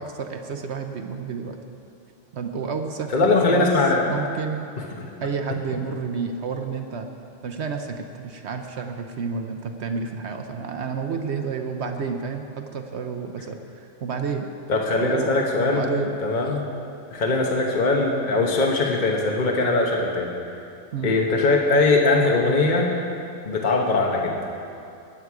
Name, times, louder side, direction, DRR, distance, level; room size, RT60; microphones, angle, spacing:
voice 1, 0.0-1.6 2.3-3.7 4.1-4.7 5.2-7.1 7.4-14.5 15.0-15.4 15.7-16.1 20.9-21.1, right 5 dB, 65° right, 5 dB, 1.0 m, -30 dB
voice 2, 3.1-4.0 4.8-5.1 14.7-15.8 16.2-16.6 17.1-20.3 21.0-22.9 23.5-24.4, left 3 dB, 40° left, -1 dB, 1.2 m, -21 dB
20.0 x 7.9 x 4.8 m, 2.6 s
omnidirectional pair, 1.3 m